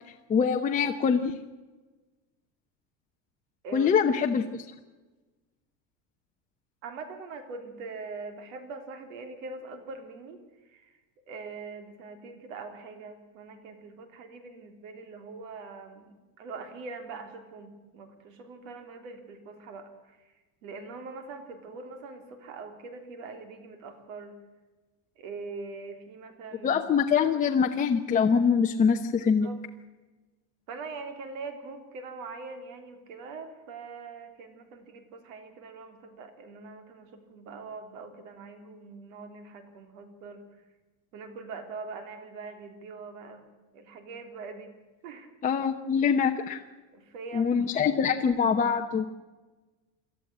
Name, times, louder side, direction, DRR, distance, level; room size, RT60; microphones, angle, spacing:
voice 1, 0.3-1.3 3.7-4.4 26.6-29.5 45.4-46.6 47.3-49.1, left 6 dB, 20° left, 3 dB, 0.9 m, -24 dB
voice 2, 6.8-10.4 10.7-10.9 11.3-20.2 20.6-24.4 25.2-26.8 27.2-27.4 29.2-29.6 30.7-40.4 41.1-43.4 43.7-44.7 45.0-45.3 46.9-48.2, right 4 dB, 85° right, 7 dB, 3.6 m, -43 dB
19.5 x 13.5 x 10.0 m, 1.2 s
cardioid pair, 155°, 39 cm